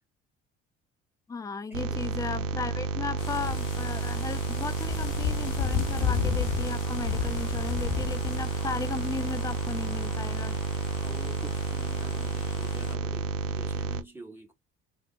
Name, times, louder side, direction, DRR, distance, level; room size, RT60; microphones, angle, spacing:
voice 1, 1.3-10.6, left 4 dB, 10° left, 0.3 m, -36 dB
sound 1, 1.7-14.0, right 5 dB, 80° right, 0.5 m, -31 dB
sound 2, 3.2-12.9, left 9 dB, 55° left, 0.7 m, -35 dB
voice 2, 11.0-14.5, right 3 dB, 5° right, 1.7 m, -46 dB
3.3 x 2.1 x 3.5 m
figure-of-eight pair, 50°, 38 cm